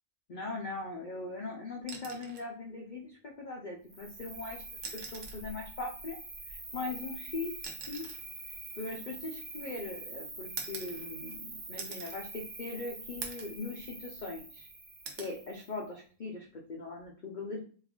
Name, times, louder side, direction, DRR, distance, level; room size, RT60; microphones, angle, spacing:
voice 1, 0.3-4.6 4.9-6.2 6.5-7.5 7.9-8.1 8.8-14.7 15.2-17.6, left 3 dB, 75° left, 0 dB, 0.4 m, -40 dB
sound 1, 1.8-2.5 3.9-4.1 4.7-5.5 6.7-9.7 10.6-11.4 11.8-12.2 12.6-12.7 13.2-13.6 14.0-14.6 15.1-15.4 16.8-17.1, right 5 dB, 75° right, 1.2 m, -45 dB
Cricket, 3.9-15.8, right 3 dB, 40° right, 0.7 m, -45 dB
3.2 x 2.4 x 3.5 m, 0.41 s
omnidirectional pair, 1.6 m